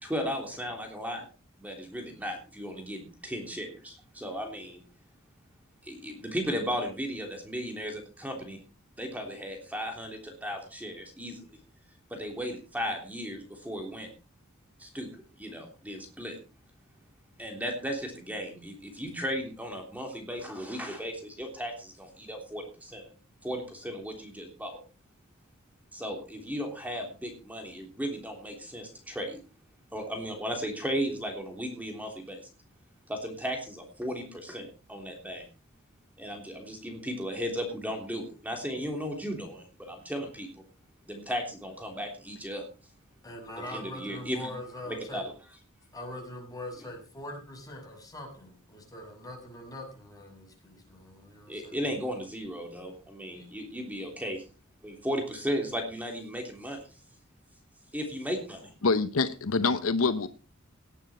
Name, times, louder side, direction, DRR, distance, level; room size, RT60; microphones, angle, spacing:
voice 1, 0.0-1.3 1.6-4.8 5.8-8.6 9.0-11.6 12.1-14.1 14.8-15.1 15.4-16.4 17.4-23.0 23.4-24.8 25.9-29.4 29.9-32.4 33.1-35.4 36.2-40.6 41.1-42.7 43.7-44.5 44.9-45.2 51.5-54.4 54.8-56.8 57.9-58.7, equal, 10° right, 3.3 m, -35 dB
voice 2, 43.2-45.2 45.9-51.9 53.3-53.5, left 1 dB, 20° left, 6.6 m, -42 dB
voice 3, 58.8-60.3, left 4 dB, 70° left, 0.8 m, -25 dB
18.5 x 9.3 x 4.3 m
head